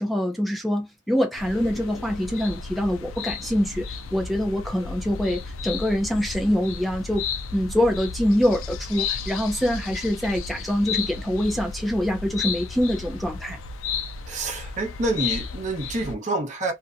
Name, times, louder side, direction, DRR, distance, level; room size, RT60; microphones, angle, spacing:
voice 1, 0.0-7.2 7.5-13.6, equal, ahead, 0.4 m, -25 dB
sound 1, 1.4-16.1, left 5 dB, 85° left, 0.4 m, -33 dB
voice 2, 14.3-16.7, right 2 dB, 35° right, 0.8 m, -27 dB
2.5 x 2.1 x 2.5 m
head